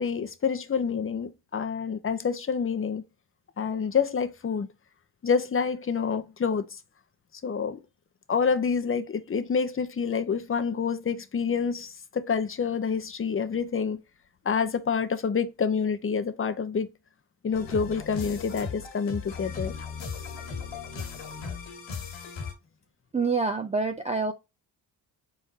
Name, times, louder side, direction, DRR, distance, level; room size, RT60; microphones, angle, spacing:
voice 1, 0.0-3.0 3.6-4.7 5.2-6.8 7.4-7.8 8.3-14.0 14.4-16.9 17.4-19.7, left 6 dB, 30° left, 0.6 m, -27 dB
sound 1, 17.5-22.5, left 5 dB, 85° left, 1.7 m, -37 dB
voice 2, 23.1-24.3, right 4 dB, 15° right, 0.4 m, -26 dB
4.4 x 3.7 x 2.8 m
cardioid pair, 90°, 45 cm